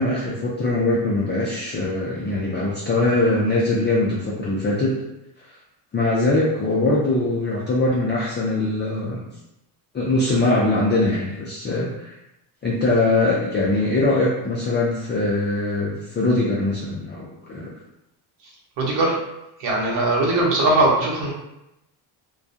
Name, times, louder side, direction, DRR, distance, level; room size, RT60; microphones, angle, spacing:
voice 1, 0.0-4.9 5.9-9.2 9.9-12.2 12.6-17.7, left 2 dB, 25° left, -6 dB, 0.4 m, -22 dB
voice 2, 18.8-19.2 19.6-21.3, right 2 dB, 65° right, -3 dB, 1.0 m, -20 dB
2.3 x 2.2 x 2.7 m, 0.88 s
supercardioid pair, 90°, 47 cm